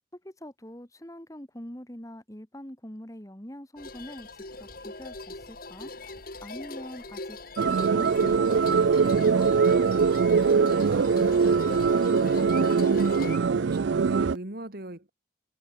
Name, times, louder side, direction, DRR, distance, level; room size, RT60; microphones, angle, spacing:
voice 1, 0.1-6.1 6.4-7.4 7.6-9.5, equal, 15° left, 1.9 m, -44 dB
sound 1, 3.8-13.4, left 2 dB, 45° left, 2.6 m, -40 dB
sound 2, 7.6-14.4, right 5 dB, 65° right, 0.4 m, -22 dB
voice 2, 10.5-15.1, right 1 dB, 50° right, 2.4 m, -39 dB
head